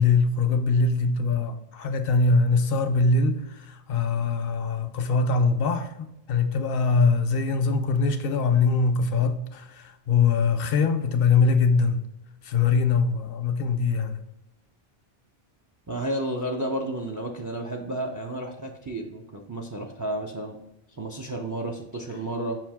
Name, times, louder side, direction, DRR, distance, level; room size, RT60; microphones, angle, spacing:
voice 1, 0.0-12.0 12.4-14.2, left 4 dB, 65° left, 0.7 m, -23 dB
voice 2, 15.9-20.6 21.0-22.6, right 1 dB, 30° right, 0.3 m, -31 dB
5.7 x 2.6 x 3.5 m
omnidirectional pair, 1.1 m